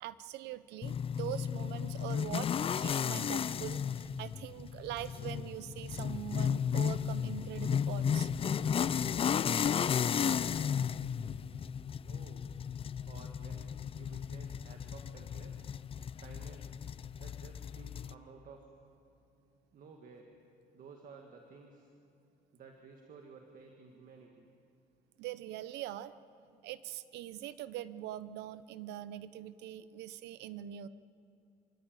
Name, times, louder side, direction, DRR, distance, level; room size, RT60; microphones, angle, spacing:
voice 1, 0.0-2.5 2.8-8.3 25.2-26.1 26.6-30.9, right 12 dB, 85° right, 15 dB, 0.7 m, -43 dB
sound 1, 0.8-18.1, left 7 dB, 35° left, 0.5 m, -34 dB
voice 2, 12.0-12.4 13.1-15.7 16.2-16.8 17.2-18.7 19.7-20.3 20.7-21.9 22.5-24.5, right 4 dB, 55° right, 3 dB, 1.9 m, -54 dB
26.5 x 14.0 x 9.2 m, 2.5 s
cardioid pair, 110°, 17 cm